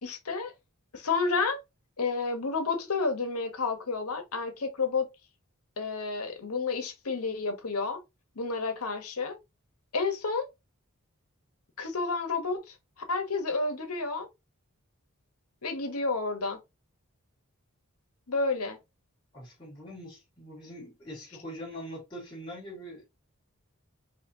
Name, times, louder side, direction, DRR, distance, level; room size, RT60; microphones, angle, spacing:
voice 1, 0.0-0.5 0.9-1.6 2.0-5.1 5.8-8.0 8.3-9.4 9.9-10.5 11.8-12.7 13.1-14.3 15.6-16.6 18.3-18.8, left 4 dB, 90° left, 1.2 m, -30 dB
voice 2, 19.3-23.0, equal, 20° left, 3.0 m, -43 dB
5.7 x 3.0 x 2.8 m
head